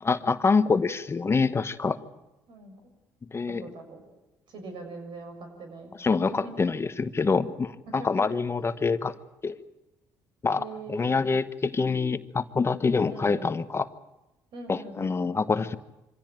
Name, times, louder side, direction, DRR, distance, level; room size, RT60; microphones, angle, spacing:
voice 1, 0.0-2.0 3.3-3.6 6.0-9.1 9.4-9.6 10.4-13.9 14.7-15.8, left 4 dB, 30° left, 12 dB, 1.1 m, -26 dB
voice 2, 2.5-2.9 3.5-4.0 4.5-6.0 6.3-6.6 7.9-8.3 10.6-11.3 13.1-13.5 14.5-15.2, right 3 dB, 70° right, 4 dB, 7.0 m, -42 dB
25.0 x 16.5 x 9.0 m, 1.0 s
supercardioid pair, 75°, 8 cm